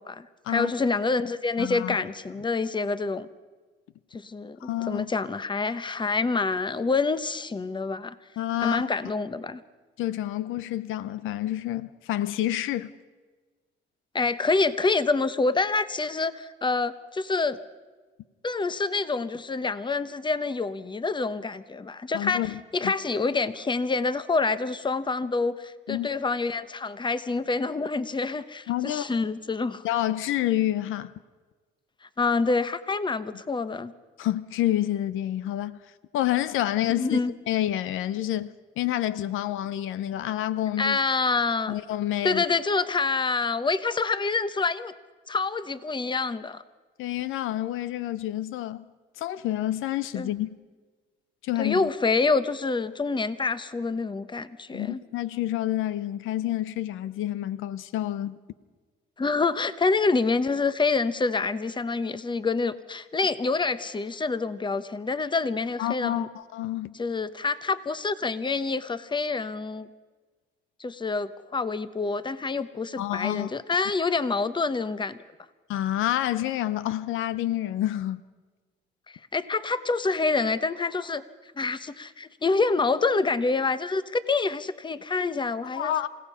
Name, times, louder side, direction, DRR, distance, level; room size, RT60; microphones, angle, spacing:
voice 1, 0.0-3.3 4.1-8.2 8.6-9.6 14.1-17.6 18.4-29.8 32.0-33.9 36.9-37.3 40.8-41.7 42.2-44.9 45.3-46.6 50.1-50.3 51.6-55.0 59.2-66.3 66.9-69.9 70.8-75.2 79.3-81.2 81.6-85.9, left 4 dB, 25° left, 0.9 m, -27 dB
voice 2, 1.6-2.0 4.6-5.1 8.4-8.9 10.0-12.9 22.1-22.9 25.9-26.1 28.7-29.2 29.8-31.1 34.2-35.8 36.1-37.2 37.5-41.0 41.7-42.4 47.0-48.8 49.2-50.5 51.4-51.9 54.7-58.4 65.8-67.0 73.0-73.5 75.7-78.3 85.7-86.1, left 13 dB, 85° left, 0.6 m, -28 dB
28.0 x 16.5 x 5.6 m
cardioid pair, 90°, 20 cm